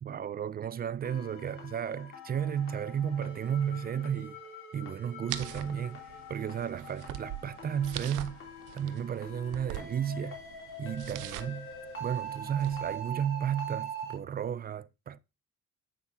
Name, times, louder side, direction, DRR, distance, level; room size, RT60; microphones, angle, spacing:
voice 1, 0.0-4.4 4.7-8.4 8.7-10.4 10.8-11.7 12.0-15.2, right 8 dB, 30° right, 0.4 m, -33 dB
sound 1, 1.0-14.1, right 3 dB, 45° left, 2.9 m, -43 dB
sound 2, 5.3-13.0, right 14 dB, 90° right, 0.6 m, -44 dB
8.7 x 6.1 x 2.7 m
cardioid pair, 90°, 30 cm